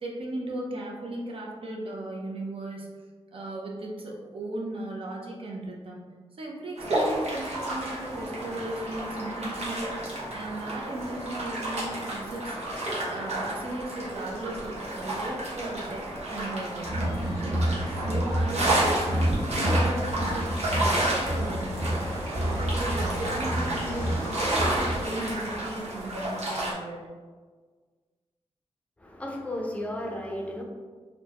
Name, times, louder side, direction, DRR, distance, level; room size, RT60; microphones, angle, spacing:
voice 1, 0.0-2.9 3.3-6.0 6.4-12.8 13.1-17.0 17.4-21.8 22.4-27.1, right 1 dB, 55° right, -2 dB, 0.7 m, -36 dB
sound 1, 6.8-26.7, right 1 dB, 80° right, 1.0 m, -31 dB
sound 2, 16.8-25.1, equal, 25° right, 0.8 m, -29 dB
voice 2, 29.0-30.6, left 1 dB, 10° left, 0 dB, 0.5 m, -34 dB
4.2 x 2.2 x 2.9 m, 1.5 s
wide cardioid pair, 120°, 11 cm